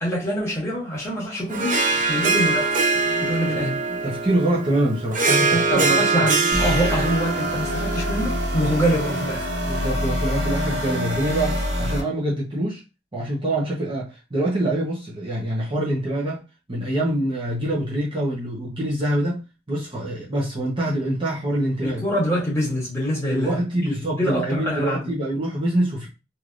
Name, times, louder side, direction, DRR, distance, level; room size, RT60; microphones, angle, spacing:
voice 1, 0.0-2.9 3.2-3.8 5.5-9.5 21.8-25.1, equal, 15° left, 1.5 m, -25 dB
Harp, 1.5-10.2, right 3 dB, 45° right, 0.5 m, -24 dB
voice 2, 1.9-2.3 2.9-3.7 4.0-6.3 9.7-12.8 13.1-16.4 16.7-22.0 23.3-26.1, right 1 dB, 25° right, 0.9 m, -25 dB
sound 1, 6.5-12.0, equal, 70° right, 1.2 m, -26 dB
3.2 x 2.8 x 2.5 m
head